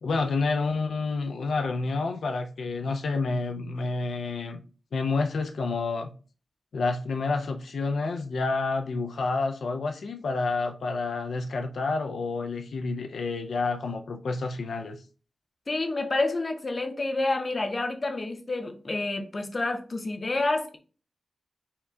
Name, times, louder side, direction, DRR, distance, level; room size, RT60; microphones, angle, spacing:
voice 1, 0.0-4.6 4.9-6.1 6.7-15.0, left 3 dB, 90° left, 5 dB, 0.4 m, -29 dB
voice 2, 15.7-20.8, left 2 dB, 35° left, 5 dB, 0.7 m, -28 dB
5.6 x 2.2 x 3.6 m, 0.37 s
wide cardioid pair, 120°, 0 cm